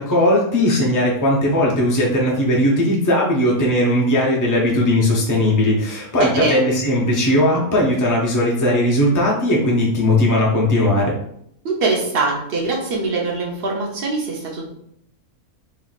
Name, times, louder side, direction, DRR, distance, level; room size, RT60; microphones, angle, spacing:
voice 1, 0.0-11.2, left 1 dB, 15° left, -3 dB, 0.7 m, -18 dB
voice 2, 6.2-6.6 11.6-14.6, right 3 dB, 45° right, -1 dB, 1.0 m, -22 dB
3.2 x 2.6 x 4.0 m, 0.73 s
omnidirectional pair, 1.5 m